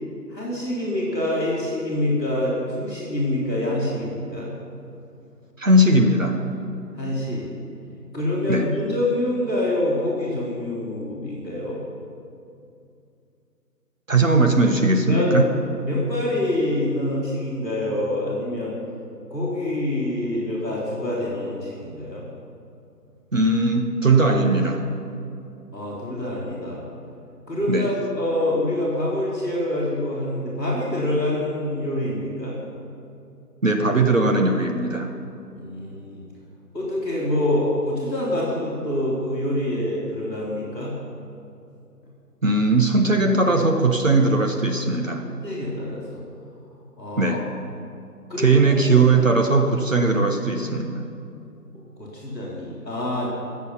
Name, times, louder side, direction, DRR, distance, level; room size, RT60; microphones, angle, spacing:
voice 1, 0.3-4.5 6.9-7.5 8.1-11.8 15.1-15.4 15.8-18.7 19.3-22.2 25.7-26.8 27.5-32.6 35.5-36.2 36.7-40.9 45.2-46.2 47.0-47.4 48.3-49.1 52.0-53.3, left 1 dB, 5° left, -22 dB, 1.7 m, -26 dB
voice 2, 5.6-6.4 8.5-8.7 14.1-15.5 23.3-24.8 27.7-27.9 33.6-35.1 42.4-45.2 47.2-47.4 48.4-51.0, right 2 dB, 50° right, 3 dB, 1.2 m, -19 dB
20.0 x 8.3 x 5.7 m, 2.6 s
figure-of-eight pair, 170°, 49 cm